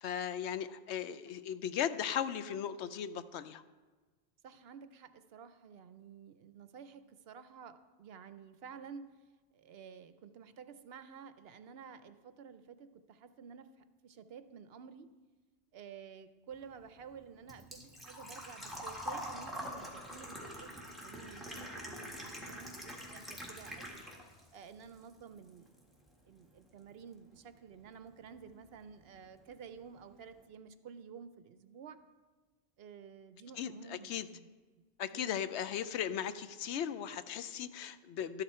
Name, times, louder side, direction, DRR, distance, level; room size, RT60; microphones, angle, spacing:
voice 1, 0.0-3.6 33.6-34.3 35.0-38.4, left 9 dB, 80° left, 13 dB, 0.9 m, -37 dB
voice 2, 4.4-9.1 9.5-15.1 15.7-24.1 24.5-25.7 26.3-32.0 32.8-34.5 35.1-35.7, right 6 dB, 65° right, 11 dB, 0.8 m, -52 dB
Engine / Trickle dribble / Fill (with liquid), 16.5-24.5 24.8-25.8 26.1-26.2 28.1-28.2 28.4-28.7 29.1-29.2 29.4-29.5, equal, ahead, 1.7 m, -45 dB
12.5 x 9.9 x 4.3 m, 1.3 s
omnidirectional pair, 1.1 m